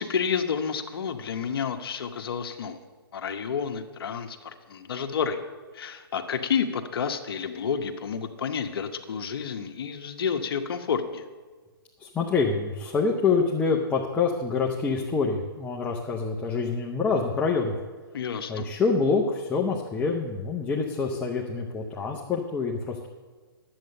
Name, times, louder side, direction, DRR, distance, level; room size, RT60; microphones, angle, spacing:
voice 1, 0.0-2.8 3.1-5.4 5.7-11.2 18.1-18.7, left 6 dB, 65° left, 7 dB, 1.0 m, -30 dB
voice 2, 12.0-17.7 18.5-23.1, left 4 dB, 10° left, -1 dB, 0.7 m, -26 dB
10.5 x 7.9 x 6.5 m, 1.4 s
hypercardioid pair, 150°, 13 cm